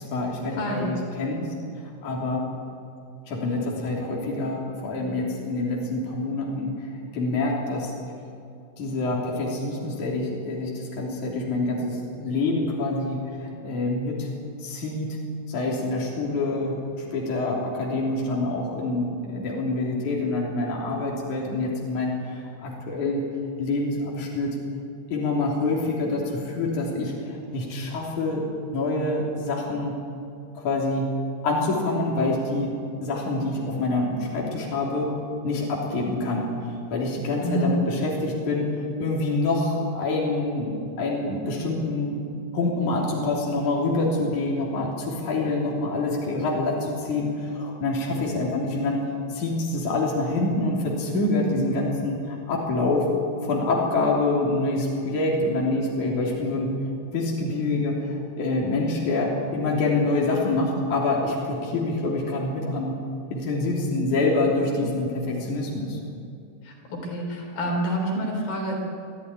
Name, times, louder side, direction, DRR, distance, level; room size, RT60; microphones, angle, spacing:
voice 1, 0.0-1.4 2.0-2.4 3.3-6.7 7.1-7.9 8.8-14.3 14.6-15.2 15.5-23.2 23.6-24.6 25.1-29.9 30.5-31.1 31.4-35.1 35.4-36.5 36.9-38.7 39.0-42.3 42.5-49.0 49.3-53.1 53.4-56.7 57.1-63.0 63.3-66.0, left 2 dB, 55° left, -3 dB, 4.6 m, -26 dB
voice 2, 0.5-1.0 37.4-37.7 66.6-68.8, right 1 dB, 85° left, 1 dB, 5.8 m, -28 dB
24.5 x 14.5 x 9.9 m, 2.5 s
omnidirectional pair, 4.1 m